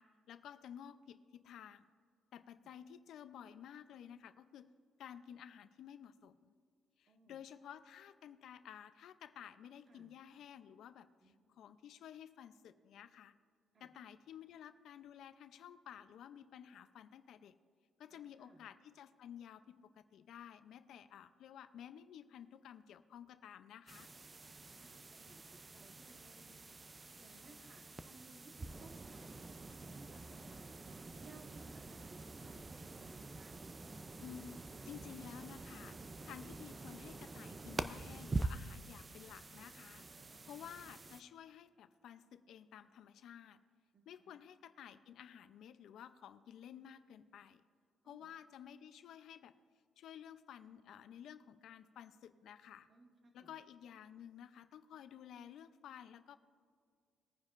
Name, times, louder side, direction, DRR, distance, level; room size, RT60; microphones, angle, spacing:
voice 1, 0.0-1.9 2.3-4.7 5.0-6.5 7.0-13.3 13.8-17.6 18.0-24.1 34.2-36.0 36.2-40.0 40.5-43.6 44.1-47.6 48.0-49.5 50.0-52.9 53.3-56.4, left 9 dB, 75° left, 12 dB, 0.5 m, -53 dB
voice 2, 7.1-7.4 9.9-10.1 11.2-11.6 13.7-13.9 18.1-18.6 24.5-26.6 27.2-29.4 29.8-30.8 31.2-33.6 40.0-40.7 43.9-44.3 48.0-48.3 52.9-53.5, right 2 dB, 40° right, 3 dB, 1.4 m, -62 dB
sound 1, 23.9-41.2, right 3 dB, 25° right, 0.4 m, -46 dB
20.5 x 9.6 x 2.5 m, 2.1 s
cardioid pair, 125°, 0 cm